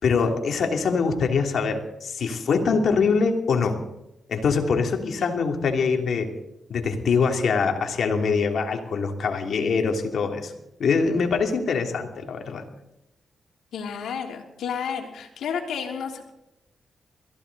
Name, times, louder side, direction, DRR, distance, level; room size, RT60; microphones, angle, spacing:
voice 1, 0.0-3.8 4.3-6.3 6.7-10.5 10.8-12.6, left 5 dB, 70° left, 3 dB, 2.9 m, -23 dB
voice 2, 5.0-5.3 13.7-16.3, left 7 dB, 85° left, 1 dB, 3.2 m, -32 dB
22.5 x 15.5 x 4.1 m, 0.88 s
cardioid pair, 65°, 0 cm